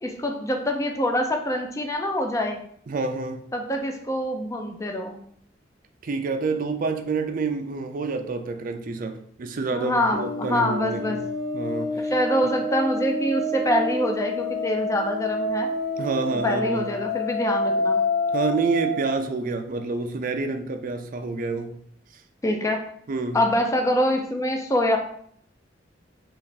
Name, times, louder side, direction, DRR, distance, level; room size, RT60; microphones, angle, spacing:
voice 1, 0.0-2.6 3.5-5.2 9.7-11.2 12.1-15.7 16.3-18.0 22.4-22.8 23.3-25.0, left 1 dB, 15° left, 3 dB, 0.4 m, -25 dB
voice 2, 2.9-3.5 6.0-11.2 11.5-12.1 12.4-12.5 16.0-16.9 18.3-21.8 23.1-23.4, right 3 dB, 50° right, 6 dB, 0.4 m, -28 dB
sound 1, 10.1-19.2, left 1 dB, 90° left, 1.1 m, -28 dB
3.3 x 2.4 x 4.0 m, 0.63 s
head